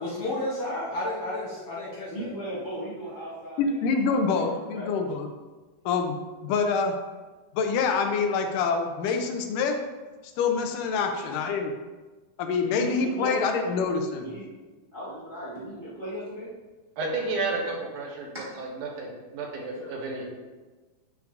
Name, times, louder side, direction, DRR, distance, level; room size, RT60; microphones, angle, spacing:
voice 1, 0.0-2.3 19.7-19.9, left 1 dB, 65° left, -7 dB, 1.6 m, -32 dB
voice 2, 2.1-3.7 4.0-4.9 11.1-11.2 12.6-13.8 14.2-14.5 14.9-16.5 18.3-18.5, equal, 25° right, -10 dB, 1.1 m, -37 dB
voice 3, 3.6-5.3 5.9-6.2 6.4-6.9 7.5-9.8 10.4-11.7 12.4-14.3, left 5 dB, 85° left, 4 dB, 2.2 m, -26 dB
voice 4, 17.0-20.3, right 3 dB, 75° right, 0 dB, 2.6 m, -32 dB
8.6 x 5.8 x 2.6 m, 1.3 s
omnidirectional pair, 3.7 m